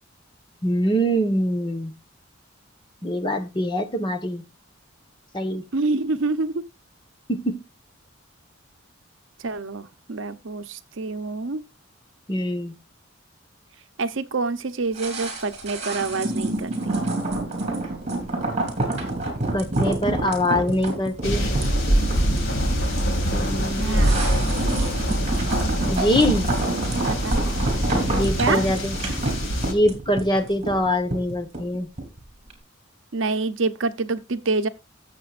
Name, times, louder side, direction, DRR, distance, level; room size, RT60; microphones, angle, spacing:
voice 1, 0.6-1.9 3.0-4.4 5.3-5.6 7.3-7.6 12.3-12.7 19.5-21.5 23.3-24.0 25.9-26.5 28.1-28.9 29.6-31.9, equal, 25° left, 1.2 m, -23 dB
voice 2, 5.7-6.6 9.4-11.6 14.0-16.9 23.8-24.3 27.1-27.4 28.4-28.7 33.1-34.7, right 3 dB, 70° right, 0.8 m, -27 dB
sound 1, 14.9-32.2 32.5-32.6, right 2 dB, 35° right, 3.6 m, -28 dB
sound 2, 21.2-29.7, equal, 75° left, 2.5 m, -24 dB
15.5 x 7.5 x 2.5 m
head